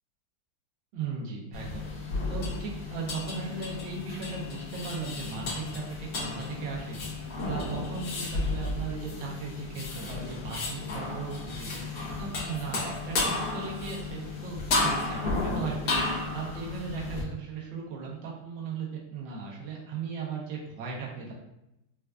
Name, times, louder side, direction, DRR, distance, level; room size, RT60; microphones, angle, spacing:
voice 1, 0.9-1.8 2.3-7.0 7.5-11.8 12.2-15.9 16.3-21.3, right 5 dB, 80° right, -3 dB, 1.5 m, -37 dB
sound 1, 1.5-17.2, left 3 dB, 55° left, 1.2 m, -33 dB
4.3 x 2.3 x 2.3 m, 0.87 s
omnidirectional pair, 2.1 m